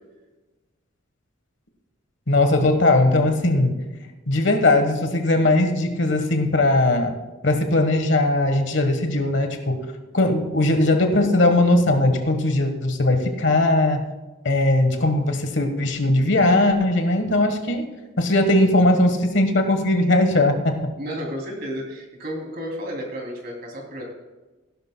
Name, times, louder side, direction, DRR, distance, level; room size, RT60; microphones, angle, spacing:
voice 1, 2.3-3.7 4.3-7.1 7.4-9.8 10.1-14.0 14.4-17.9 18.2-20.7, left 2 dB, 60° left, 6 dB, 1.3 m, -19 dB
voice 2, 21.0-24.0, equal, 45° right, 0 dB, 2.8 m, -32 dB
16.5 x 11.5 x 2.2 m, 1.2 s
head